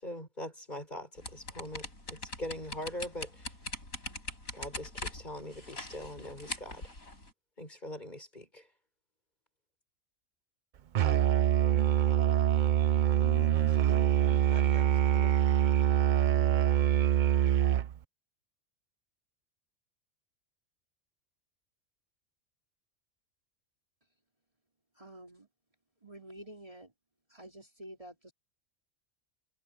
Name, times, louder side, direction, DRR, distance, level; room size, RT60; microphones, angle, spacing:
voice 1, 0.0-3.5 4.5-6.9 7.6-8.7, left 1 dB, 35° left, 6.7 m, -42 dB
sound 1, 1.2-7.3, left 2 dB, 85° left, 8.5 m, -42 dB
Musical instrument, 10.9-18.0, right 11 dB, 70° right, 0.4 m, -25 dB
voice 2, 13.1-15.4, left 4 dB, 55° left, 2.4 m, -47 dB
voice 3, 24.9-25.5 26.0-26.9 27.3-28.3, right 1 dB, 25° right, 3.5 m, -49 dB
omnidirectional pair, 1.4 m